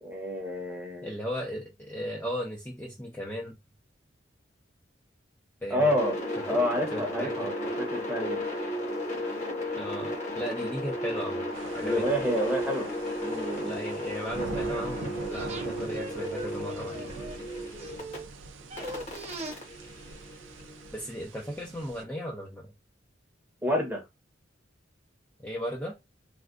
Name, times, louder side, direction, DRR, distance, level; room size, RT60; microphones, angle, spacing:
voice 1, 0.0-1.1 5.7-6.2 6.5-7.5 7.8-8.4 11.8-12.9 13.2-13.8 23.6-24.0, equal, 10° right, 1.0 m, -29 dB
voice 2, 1.0-3.6 5.6-5.9 6.9-7.5 9.8-11.5 11.7-12.3 13.7-17.1 20.9-22.7 25.4-25.9, equal, 10° left, 0.6 m, -36 dB
sound 1, 5.8-18.2 18.8-20.9, left 1 dB, 40° left, 1.1 m, -34 dB
sound 2, 11.5-22.0, right 4 dB, 90° right, 0.4 m, -44 dB
sound 3, 14.5-18.3 18.7-19.5 20.1-20.2, right 1 dB, 35° right, 0.7 m, -41 dB
3.5 x 2.4 x 2.5 m
head